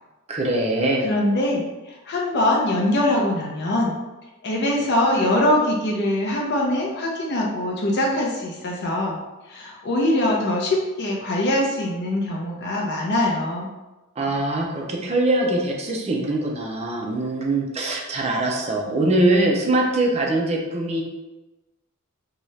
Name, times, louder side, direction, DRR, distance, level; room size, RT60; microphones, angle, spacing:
voice 1, 0.3-1.1 14.2-21.0, right 2 dB, 30° right, -1 dB, 0.5 m, -22 dB
voice 2, 1.0-4.0 4.4-9.2 9.5-13.7, left 1 dB, 50° left, -3 dB, 0.5 m, -23 dB
2.7 x 2.3 x 3.1 m, 1.1 s
head